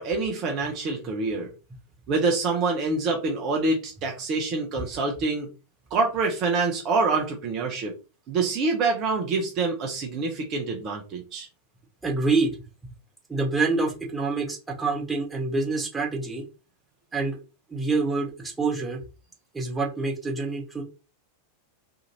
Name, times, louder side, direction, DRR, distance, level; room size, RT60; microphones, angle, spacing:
voice 1, 0.0-1.5 2.1-5.5 5.9-7.9 8.3-11.5, right 3 dB, 35° right, 1 dB, 0.6 m, -26 dB
voice 2, 12.0-12.6 12.8-12.9 13.3-16.4 17.1-17.4 17.7-19.0 19.5-20.8, right 3 dB, 10° right, -2 dB, 0.9 m, -26 dB
2.6 x 2.4 x 2.9 m, 0.31 s
figure-of-eight pair, 90°, 0 cm